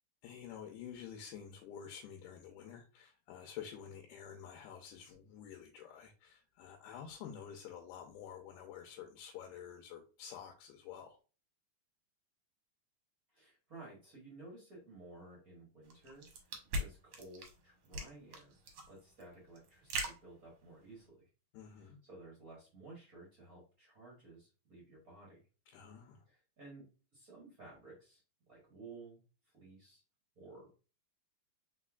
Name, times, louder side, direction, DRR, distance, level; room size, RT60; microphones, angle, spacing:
voice 1, 0.2-11.2 21.5-22.0 25.7-26.2, left 8 dB, 85° left, 3 dB, 2.2 m, -49 dB
voice 2, 13.3-16.5 16.7-21.3 21.8-25.4 26.2-26.8 27.1-28.2 28.5-30.0 30.3-30.8, right 2 dB, 45° right, -4 dB, 1.1 m, -55 dB
sound 1, 15.9-21.1, right 1 dB, 65° right, 1.7 m, -41 dB
4.3 x 4.1 x 2.3 m, 0.34 s
omnidirectional pair, 3.6 m